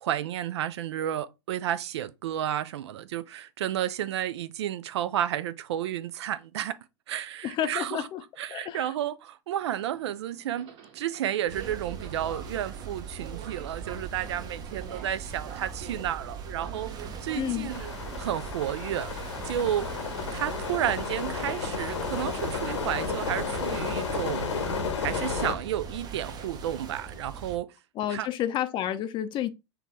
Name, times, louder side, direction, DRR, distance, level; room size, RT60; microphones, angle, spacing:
voice 1, 0.0-6.8 7.1-8.0 8.4-16.9 17.2-17.9 18.2-19.1 19.5-19.9 20.3-24.6 25.0-27.7 28.1-28.3, right 11 dB, 65° right, 0.4 m, -32 dB
voice 2, 7.4-8.2 8.5-8.9 17.4-17.7 28.0-29.5, left 11 dB, 30° left, 0.5 m, -30 dB
Subway metro underground, 9.6-19.1, right 8 dB, 50° right, 1.1 m, -46 dB
sound 1, 11.5-27.6, right 5 dB, 25° right, 0.6 m, -40 dB
sound 2, 17.7-25.5, left 5 dB, 80° left, 0.9 m, -32 dB
5.8 x 2.2 x 3.0 m
hypercardioid pair, 95°, 15 cm